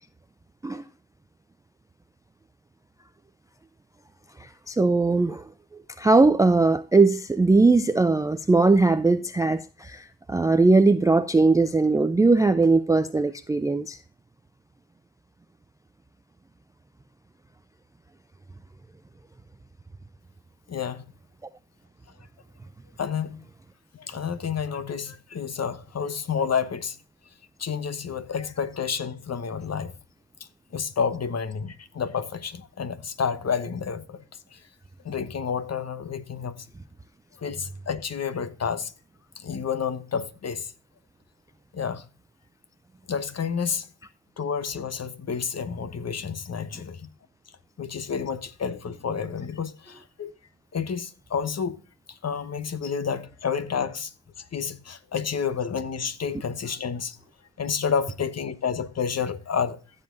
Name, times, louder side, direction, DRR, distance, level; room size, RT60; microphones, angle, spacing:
voice 1, 4.4-5.4 6.0-14.0, right 3 dB, 10° right, 0.4 m, -20 dB
voice 2, 20.7-21.0 23.0-23.4 23.9-27.0 27.6-29.9 30.7-34.2 34.5-34.6 35.0-36.5 37.4-38.9 39.4-40.7 41.7-42.0 43.1-43.9 44.4-47.1 47.8-50.3 50.7-51.8 52.1-54.1 54.4-57.1 57.6-59.8, left 6 dB, 35° left, 1.1 m, -30 dB
15.0 x 7.4 x 2.6 m
hypercardioid pair, 60°, 44 cm